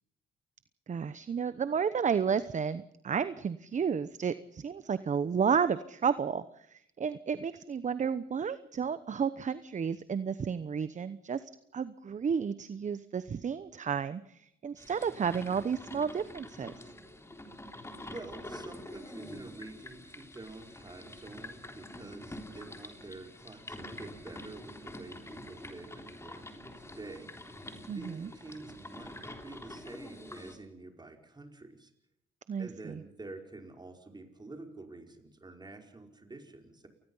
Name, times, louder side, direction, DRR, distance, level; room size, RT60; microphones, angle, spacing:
voice 1, 0.9-16.7 27.9-28.3 32.5-33.0, right 6 dB, 40° right, 14 dB, 0.9 m, -32 dB
sound 1, 14.8-30.6, left 1 dB, 15° left, 3.6 m, -46 dB
voice 2, 18.0-31.9 32.6-36.9, right 2 dB, 20° right, 4 dB, 5.0 m, -48 dB
28.5 x 20.0 x 5.6 m, 0.79 s
cardioid pair, 90°, 20 cm